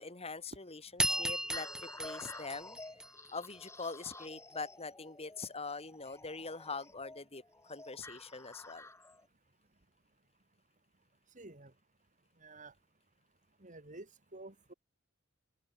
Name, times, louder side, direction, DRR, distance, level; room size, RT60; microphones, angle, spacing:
voice 1, 0.0-2.8 3.3-7.4 7.7-8.9, left 4 dB, 30° left, 3.1 m, -43 dB
sound 1, 1.0-3.6, right 1 dB, 5° right, 4.9 m, -36 dB
sound 2, 1.1-9.3, left 2 dB, 15° left, 7.2 m, -51 dB
voice 2, 11.4-11.7 12.4-12.7 13.6-14.1 14.3-14.7, right 2 dB, 40° right, 3.2 m, -50 dB
head